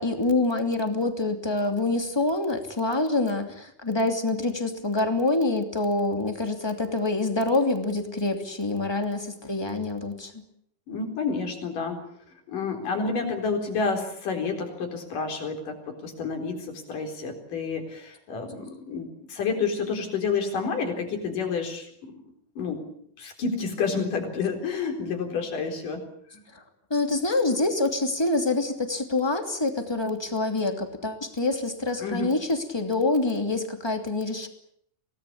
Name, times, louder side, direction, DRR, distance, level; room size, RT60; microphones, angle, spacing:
voice 1, 0.0-10.4 26.5-26.6 26.9-34.5, left 2 dB, 10° left, 5 dB, 2.4 m, -26 dB
voice 2, 10.9-12.0 12.5-21.9 22.6-22.8 23.2-26.0 26.3-26.4 32.0-32.3, left 5 dB, 75° left, 5 dB, 5.6 m, -29 dB
25.5 x 18.5 x 8.7 m, 0.69 s
omnidirectional pair, 3.8 m